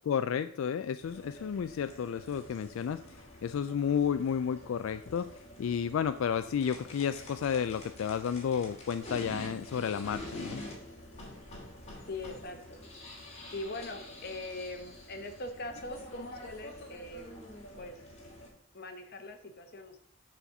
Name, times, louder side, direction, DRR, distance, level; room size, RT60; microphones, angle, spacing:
voice 1, 0.1-3.0 3.4-5.3 5.6-10.6, left 7 dB, 75° left, 11 dB, 0.3 m, -31 dB
sound 1, 1.0-18.5, left 1 dB, 30° left, 2.2 m, -47 dB
voice 2, 12.1-12.8 13.5-17.4 17.8-18.0 18.7-20.0, left 2 dB, 45° left, 6 dB, 1.1 m, -41 dB
7.1 x 4.4 x 6.6 m, 0.65 s
head